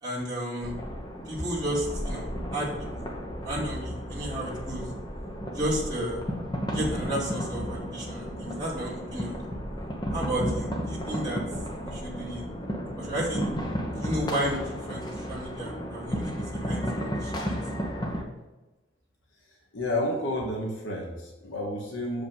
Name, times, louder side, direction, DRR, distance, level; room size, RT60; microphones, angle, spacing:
voice 1, 0.0-0.8 1.3-2.7 3.0-3.1 3.4-4.8 5.5-6.2 6.7-9.4 10.1-11.4 11.8-12.5 13.0-13.4 14.0-14.6 14.9-17.5, right 1 dB, 20° right, -7 dB, 2.4 m, -32 dB
sound 1, 0.6-18.2, equal, 20° left, 0.9 m, -33 dB
voice 2, 19.7-22.2, left 1 dB, 70° left, -1 dB, 1.2 m, -30 dB
6.7 x 5.1 x 5.5 m, 1.1 s
head